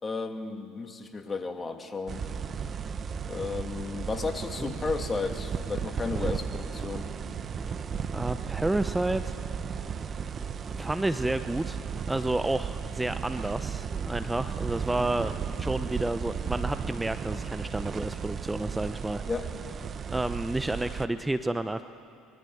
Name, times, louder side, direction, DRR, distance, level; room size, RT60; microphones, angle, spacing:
voice 1, 0.0-2.2 3.2-7.1 19.3-19.5, left 4 dB, 25° left, 5 dB, 2.4 m, -33 dB
sound 1, 2.1-21.1, right 6 dB, 40° right, 1.2 m, -35 dB
voice 2, 8.1-9.3 10.8-11.8 12.1-19.2 20.1-21.8, right 2 dB, 10° right, 11 dB, 0.8 m, -30 dB
24.0 x 22.5 x 7.9 m, 2.6 s
hypercardioid pair, 75°, 0 cm